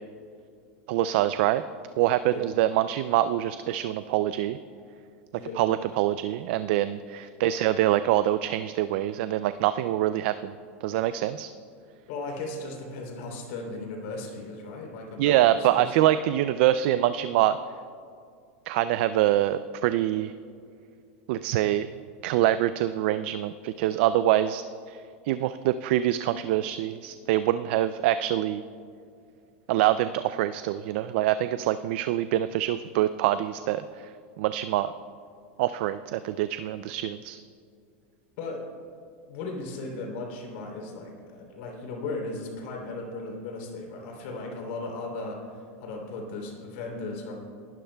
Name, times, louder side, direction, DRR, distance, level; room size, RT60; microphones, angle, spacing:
voice 1, 0.9-1.6 2.0-4.6 5.6-10.5 10.8-11.5 15.2-17.6 18.7-20.3 21.3-21.9 22.2-25.0 25.3-28.6 29.7-33.8 34.4-34.9 35.6-37.4, right 13 dB, 60° right, 12 dB, 0.3 m, -25 dB
voice 2, 12.1-15.9 38.4-38.6 39.3-47.3, left 3 dB, 65° left, 1 dB, 3.1 m, -36 dB
19.0 x 12.0 x 2.2 m, 2.3 s
supercardioid pair, 140°, 7 cm